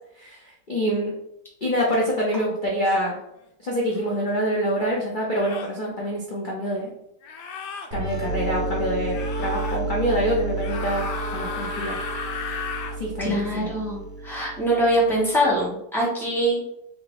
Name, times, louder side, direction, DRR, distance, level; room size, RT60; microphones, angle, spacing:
voice 1, 0.2-1.1 1.6-3.2 3.6-6.9 7.9-11.1 11.3-12.0 13.0-13.7, equal, 50° left, -4 dB, 0.6 m, -26 dB
sound 1, 3.9-4.1 5.3-5.8 7.2-7.9 9.1-9.8 10.6-13.0, left 4 dB, 75° left, 1.2 m, -34 dB
sound 2, 7.9-15.5, right 2 dB, 70° right, 1.4 m, -31 dB
voice 2, 13.2-16.6, equal, ahead, -6 dB, 1.3 m, -23 dB
3.7 x 2.9 x 3.8 m, 0.77 s
omnidirectional pair, 1.9 m